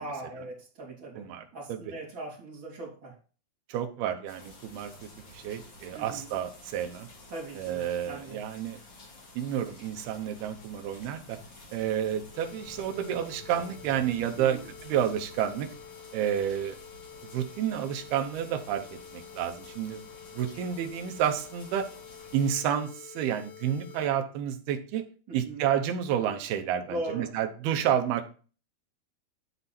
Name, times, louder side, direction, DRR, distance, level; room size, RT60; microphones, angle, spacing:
voice 1, 0.0-1.2 1.5-3.1 5.9-6.3 7.3-8.4 14.3-14.7 25.3-25.7 26.9-27.3, right 2 dB, 30° right, -4 dB, 3.3 m, -39 dB
voice 2, 1.2-1.8 3.7-4.9 5.3-7.1 7.5-8.8 9.4-11.4 11.7-15.7 16.1-16.8 17.3-18.8 19.1-20.0 20.3-21.9 22.3-25.0 25.3-28.3, right 9 dB, 80° right, 6 dB, 2.8 m, -30 dB
sound 1, 4.3-22.5, left 2 dB, 45° left, 2.7 m, -51 dB
sound 2, 12.3-24.1, left 8 dB, 90° left, 1.7 m, -49 dB
11.5 x 4.5 x 4.2 m, 0.39 s
omnidirectional pair, 4.5 m